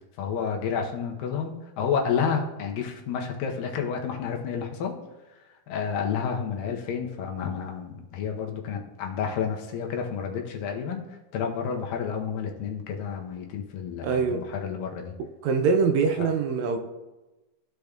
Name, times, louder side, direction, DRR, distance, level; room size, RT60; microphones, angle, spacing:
voice 1, 0.2-5.0 5.7-11.0 11.3-15.1 16.2-16.3, left 6 dB, 85° left, 2 dB, 2.6 m, -30 dB
voice 2, 14.0-14.4 15.4-16.8, right 5 dB, 80° right, 5 dB, 1.7 m, -23 dB
14.5 x 5.1 x 2.4 m, 1.1 s
omnidirectional pair, 3.8 m